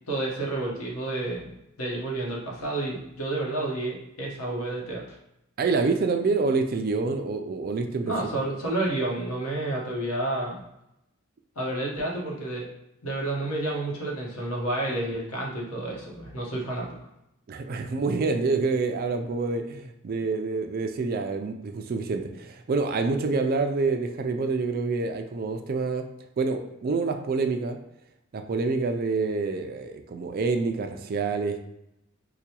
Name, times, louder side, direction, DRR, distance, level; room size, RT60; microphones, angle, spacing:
voice 1, 0.1-5.2 8.0-10.6 11.6-12.7 13.0-17.0, right 2 dB, 90° left, -2 dB, 1.0 m, -30 dB
voice 2, 5.6-8.4 17.5-26.0 26.4-27.8 28.3-31.6, right 4 dB, 45° right, 5 dB, 0.3 m, -27 dB
4.8 x 2.2 x 2.8 m, 0.85 s
head